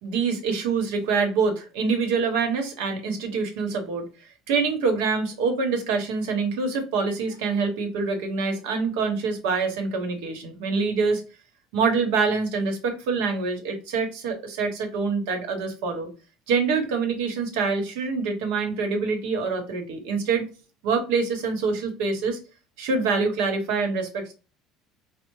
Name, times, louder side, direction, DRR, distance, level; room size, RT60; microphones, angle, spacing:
voice 1, 0.0-4.0 4.5-11.2 11.7-16.1 16.5-20.5 20.8-22.4 22.8-24.3, right 4 dB, 90° right, 5 dB, 1.0 m, -25 dB
4.2 x 2.0 x 3.0 m, 0.33 s
cardioid pair, 145°, 0 cm